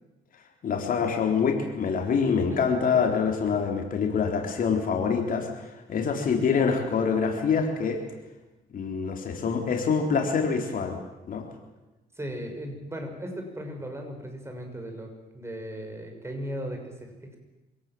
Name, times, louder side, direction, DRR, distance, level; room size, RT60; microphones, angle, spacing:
voice 1, 0.6-8.0 8.7-11.0 11.3-11.4, left 6 dB, 55° left, 3 dB, 3.9 m, -25 dB
voice 2, 12.1-17.4, equal, 15° right, 4 dB, 6.6 m, -37 dB
26.0 x 17.5 x 7.8 m, 1.1 s
cardioid pair, 90°, 17 cm